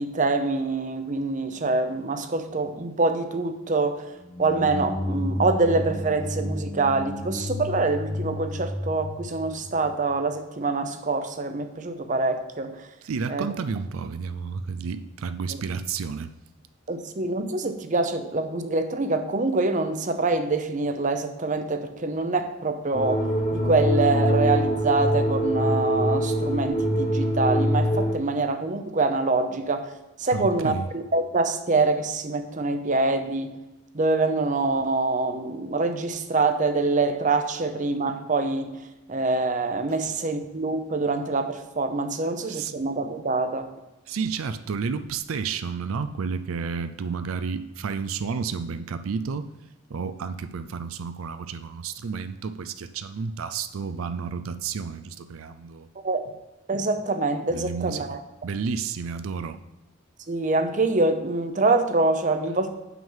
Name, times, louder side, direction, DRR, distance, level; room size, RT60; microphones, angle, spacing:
voice 1, 0.0-4.1 4.4-12.8 13.3-13.5 16.9-23.2 23.5-29.9 30.2-33.5 33.9-38.7 39.1-43.7 56.0-56.3 56.7-58.2 60.3-62.7, right 3 dB, 35° right, 8 dB, 0.7 m, -25 dB
sound 1, 4.2-10.3, left 1 dB, 15° left, 0.5 m, -32 dB
voice 2, 13.0-16.3 30.3-30.9 39.9-40.0 42.2-42.7 44.1-49.5 49.9-55.9 57.5-58.2 58.4-59.6, right 5 dB, 80° right, 10 dB, 0.4 m, -31 dB
sound 2, 22.9-28.1, equal, 35° left, 1.0 m, -23 dB
7.2 x 6.0 x 5.5 m, 1.0 s
head